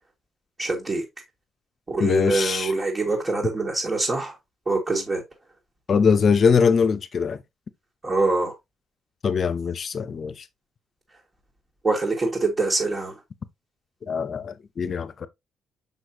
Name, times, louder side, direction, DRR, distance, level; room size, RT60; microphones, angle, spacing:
voice 1, 0.6-1.0 1.9-4.3 4.7-5.2 8.0-8.5 11.8-13.2, right 3 dB, 30° right, 2.0 m, -24 dB
voice 2, 2.0-2.7 5.9-7.4 9.2-10.4 14.1-15.3, left 6 dB, 50° left, 0.7 m, -22 dB
6.2 x 5.5 x 2.8 m
cardioid pair, 90°, 0 cm